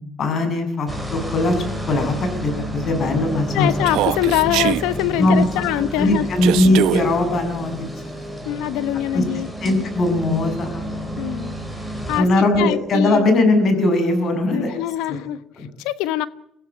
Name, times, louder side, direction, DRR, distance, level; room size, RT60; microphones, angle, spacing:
voice 1, 0.0-3.7 5.2-5.4 6.0-7.9 9.1-9.2 9.6-11.2 12.1-14.8 15.1-15.2 15.6-15.7, left 2 dB, 50° left, 7.1 m, -20 dB
sound 1, 0.9-12.2, right 1 dB, 5° left, 5.3 m, -30 dB
voice 2, 3.5-6.3 8.4-9.5 11.2-11.6 12.1-12.3 12.6-13.2 14.5-15.4 15.8-16.3, left 13 dB, 85° left, 1.1 m, -23 dB
Human voice, 3.8-4.8 6.4-7.0, right 15 dB, 80° right, 0.9 m, -21 dB
24.0 x 15.5 x 8.6 m
cardioid pair, 85°, 0 cm